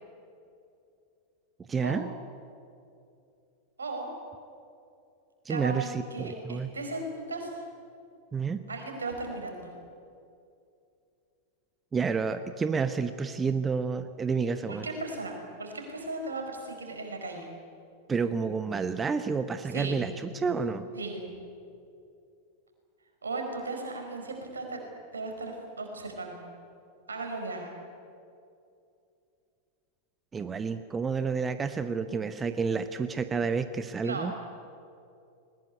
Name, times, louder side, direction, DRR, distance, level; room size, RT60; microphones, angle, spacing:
voice 1, 1.7-2.1 5.4-6.7 8.3-8.7 11.9-14.9 18.1-20.9 30.3-34.3, right 5 dB, 15° right, 11 dB, 0.9 m, -30 dB
voice 2, 5.5-7.6 8.7-9.7 14.7-17.5 19.7-20.0 20.9-21.3 23.2-24.8 25.1-26.4 27.1-27.7 34.0-34.4, right 3 dB, 75° right, 3 dB, 4.8 m, -36 dB
20.5 x 20.0 x 9.7 m, 2.5 s
figure-of-eight pair, 90°, 0 cm